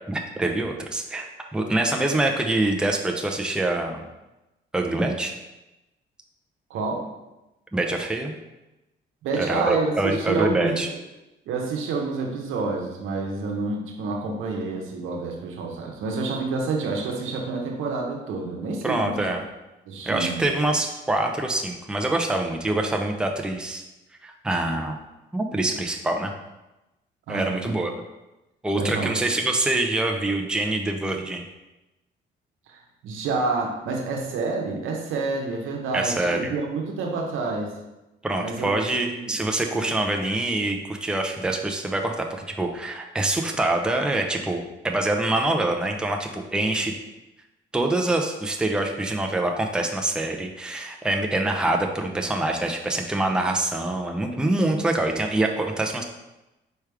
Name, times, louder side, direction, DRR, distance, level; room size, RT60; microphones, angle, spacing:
voice 1, 0.1-4.1 4.7-5.3 7.7-8.3 9.3-10.9 18.8-19.4 20.0-23.8 24.2-25.0 25.3-26.3 27.3-27.9 28.6-31.5 35.9-36.5 38.2-46.9 47.7-56.0, right 2 dB, 5° right, 2 dB, 0.5 m, -25 dB
voice 2, 6.7-7.0 9.2-10.8 11.5-19.3 19.9-20.4 27.3-27.7 28.8-29.1 32.7-37.7 38.4-39.4 39.7-39.9, right 3 dB, 90° right, 1 dB, 0.9 m, -28 dB
4.7 x 3.3 x 3.4 m, 0.99 s
cardioid pair, 90°, 20 cm